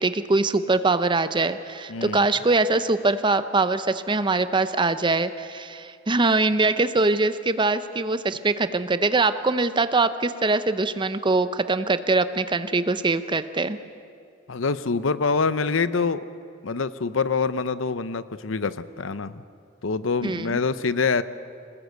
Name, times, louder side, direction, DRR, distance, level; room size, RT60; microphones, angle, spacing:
voice 1, 0.0-13.8 20.2-20.6, right 3 dB, 25° right, 12 dB, 0.7 m, -23 dB
voice 2, 1.9-2.3 14.5-16.2 16.6-19.4 19.8-21.2, left 4 dB, 70° left, 14 dB, 0.7 m, -25 dB
23.0 x 20.0 x 8.1 m, 2.4 s
head